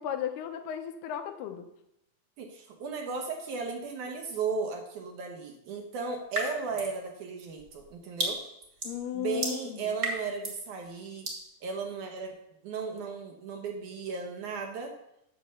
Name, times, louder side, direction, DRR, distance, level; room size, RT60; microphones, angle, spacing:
voice 1, 0.0-1.7 8.8-9.9, left 9 dB, 90° left, 7 dB, 2.9 m, -35 dB
voice 2, 2.4-8.4 9.1-11.3 11.6-12.3 12.6-14.9, right 5 dB, 65° right, 3 dB, 2.2 m, -35 dB
sound 1, 6.3-7.0 7.4-10.7 11.2-11.5, right 1 dB, 30° right, 1.8 m, -35 dB
8.8 x 6.9 x 6.7 m, 0.80 s
omnidirectional pair, 4.4 m